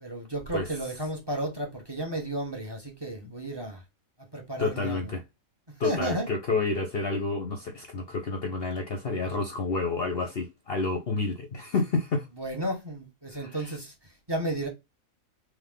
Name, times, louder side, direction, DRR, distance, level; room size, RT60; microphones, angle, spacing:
voice 1, 0.0-3.8 4.3-5.1 5.7-6.3 12.4-14.7, right 1 dB, 20° right, 1.3 m, -33 dB
voice 2, 4.6-5.2 5.8-12.3 13.3-13.7, left 3 dB, 50° left, 0.9 m, -29 dB
3.6 x 3.2 x 3.6 m
omnidirectional pair, 1.5 m